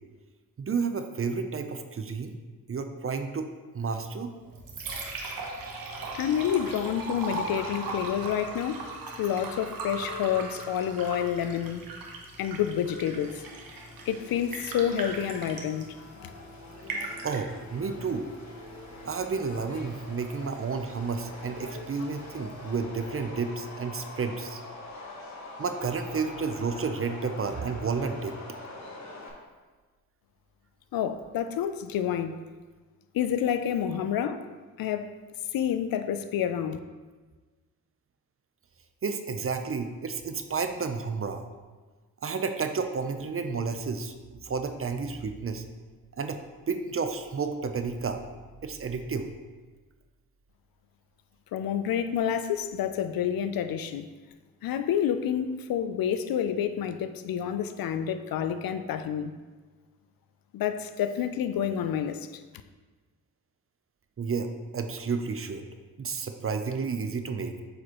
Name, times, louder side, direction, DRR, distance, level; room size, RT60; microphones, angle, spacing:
voice 1, 0.6-2.3 2.7-4.3 17.2-18.3 19.0-24.6 25.6-28.3 39.0-41.4 42.2-45.6 46.2-46.4 46.7-48.2 48.6-49.3 64.2-65.6 66.0-67.5, right 5 dB, 35° right, 7 dB, 0.7 m, -31 dB
Liquid, 4.3-23.4, right 2 dB, 65° right, 1.2 m, -40 dB
voice 2, 6.1-8.9 9.2-11.8 12.4-13.4 14.1-16.0 30.9-32.4 33.1-34.5 34.8-35.1 35.5-36.8 51.5-54.1 54.6-59.3 60.5-62.3, left 9 dB, 70° left, 10 dB, 0.5 m, -28 dB
Subway metro underground, 13.2-29.3, left 2 dB, 50° left, 1.7 m, -44 dB
7.9 x 4.8 x 3.1 m, 1.3 s
supercardioid pair, 60°, 37 cm